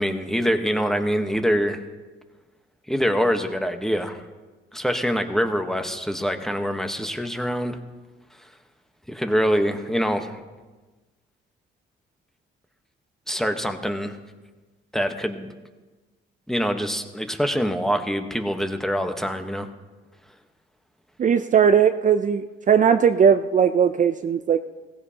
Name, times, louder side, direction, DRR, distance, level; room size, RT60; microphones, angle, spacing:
voice 1, 0.0-1.8 2.9-4.2 4.7-7.8 9.1-10.4 13.3-14.2 14.9-15.5 16.5-19.7, equal, ahead, 6 dB, 1.2 m, -24 dB
voice 2, 21.2-24.6, right 7 dB, 40° right, 9 dB, 0.5 m, -18 dB
17.0 x 16.0 x 2.9 m, 1.3 s
cardioid pair, 90°, 20 cm